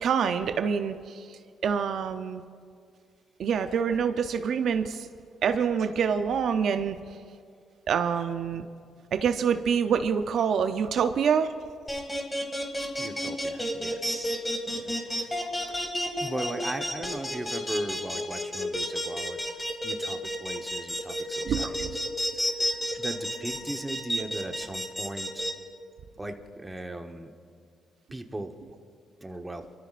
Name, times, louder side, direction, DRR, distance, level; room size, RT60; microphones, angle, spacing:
voice 1, 0.0-2.4 3.4-5.1 5.4-7.0 7.9-8.7 9.1-11.5 14.7-14.8 21.4-21.9, right 7 dB, 65° right, 8 dB, 0.6 m, -26 dB
sound 1, 11.9-25.5, equal, 15° left, 2.0 m, -30 dB
voice 2, 13.0-15.8 16.2-22.0 22.3-22.7 23.0-25.5 26.2-27.3 28.1-28.6 29.2-29.6, right 1 dB, 15° right, 5 dB, 1.1 m, -38 dB
29.5 x 13.5 x 2.5 m, 2.2 s
cardioid pair, 90°, 0 cm